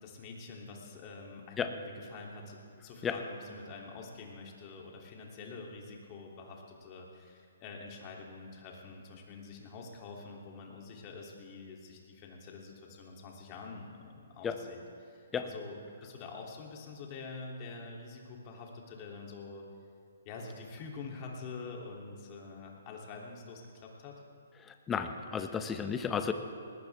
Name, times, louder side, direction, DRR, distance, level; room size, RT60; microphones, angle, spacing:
voice 1, 0.0-19.7 20.2-24.2, left 4 dB, 35° left, -1 dB, 3.1 m, -46 dB
voice 2, 24.6-26.3, left 7 dB, 15° left, 8 dB, 1.1 m, -33 dB
20.5 x 19.5 x 3.6 m, 2.5 s
figure-of-eight pair, 135°, 0 cm